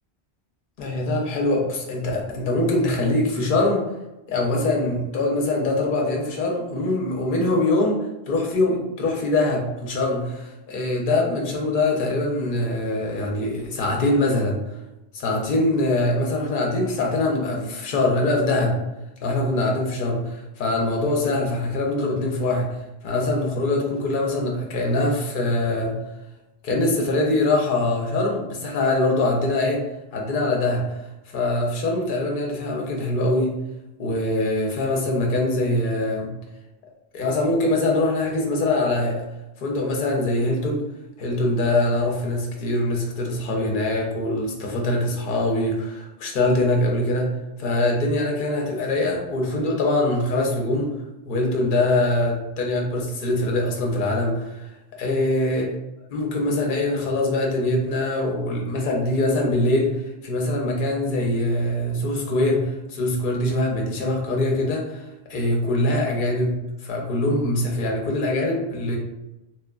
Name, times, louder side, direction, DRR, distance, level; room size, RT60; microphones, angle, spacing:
voice 1, 0.8-3.8 4.3-8.0 8.3-14.6 15.1-18.8 19.2-22.7 23.0-25.9 26.6-29.8 30.1-30.8 31.3-33.6 34.0-36.3 37.1-39.2 39.6-40.8 41.2-47.3 47.6-50.9 51.2-54.7 55.0-55.7 56.1-66.6 66.8-69.0, left 2 dB, 60° left, 0 dB, 0.7 m, -23 dB
2.8 x 2.1 x 2.3 m, 0.96 s
omnidirectional pair, 1.1 m